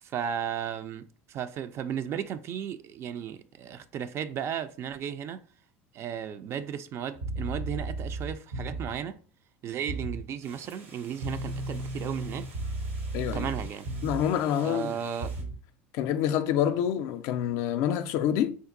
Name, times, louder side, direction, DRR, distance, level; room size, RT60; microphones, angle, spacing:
voice 1, 0.0-5.4 5.9-9.2 9.6-12.5 13.3-13.9 14.6-15.3, right 8 dB, 45° right, 0.3 m, -35 dB
sound 1, 7.1-9.0 9.9-10.3 11.2-14.4 15.2-15.6, right 2 dB, 65° right, 0.8 m, -34 dB
sound 2, 10.4-15.4, right 2 dB, 85° right, 1.3 m, -53 dB
voice 2, 13.1-13.5 14.0-14.9 15.9-18.6, left 10 dB, 60° left, 0.3 m, -27 dB
3.5 x 2.2 x 2.5 m
hypercardioid pair, 80°, 6 cm